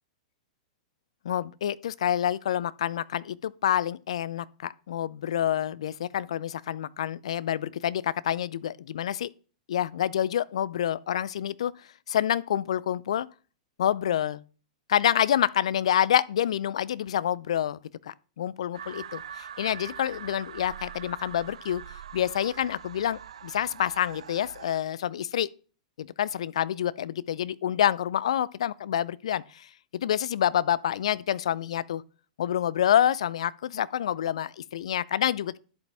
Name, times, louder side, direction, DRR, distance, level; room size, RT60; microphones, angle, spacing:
voice 1, 1.2-9.3 9.7-11.7 12.1-13.3 13.8-14.4 14.9-17.8 18.0-25.5 26.0-32.0 32.4-35.6, left 10 dB, 65° left, 0.5 m, -27 dB
sound 1, 18.7-24.8, right 8 dB, 70° right, 0.4 m, -43 dB
11.0 x 8.2 x 3.4 m
hypercardioid pair, 105°, 3 cm